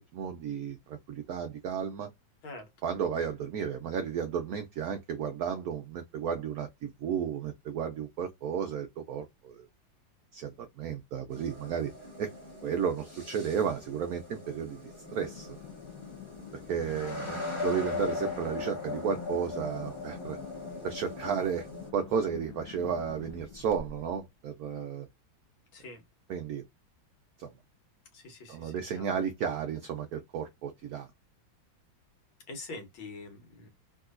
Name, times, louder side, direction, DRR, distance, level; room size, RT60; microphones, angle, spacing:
voice 1, 0.0-2.1 2.8-9.7 10.3-11.9 12.2-12.3 12.6-15.6 16.7-20.4 20.8-21.7 21.9-25.1 26.3-26.6 27.4-27.5 28.5-31.1, right 7 dB, 85° right, 0.8 m, -33 dB
sound 1, 11.3-21.9, left 3 dB, 20° left, 0.9 m, -39 dB
sound 2, 15.0-24.2, left 7 dB, 55° left, 1.0 m, -48 dB
voice 2, 25.7-26.0 28.1-29.1 32.5-33.7, left 2 dB, 85° left, 2.0 m, -45 dB
3.7 x 2.7 x 2.4 m
omnidirectional pair, 2.2 m